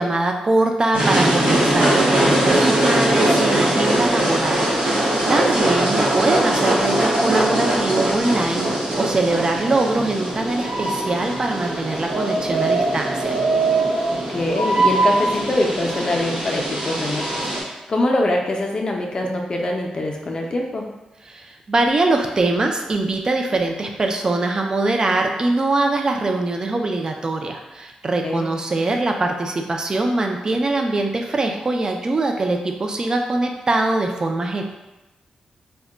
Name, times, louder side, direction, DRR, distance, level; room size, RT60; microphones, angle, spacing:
voice 1, 0.0-13.3 21.3-34.6, right 2 dB, 35° right, 3 dB, 0.3 m, -22 dB
sound 1, 0.9-17.6, right 1 dB, 90° right, 0.8 m, -21 dB
voice 2, 14.1-20.9 28.2-28.5, left 1 dB, 40° left, 1 dB, 0.4 m, -24 dB
2.2 x 2.1 x 3.7 m, 1.0 s
wide cardioid pair, 100°, 2 cm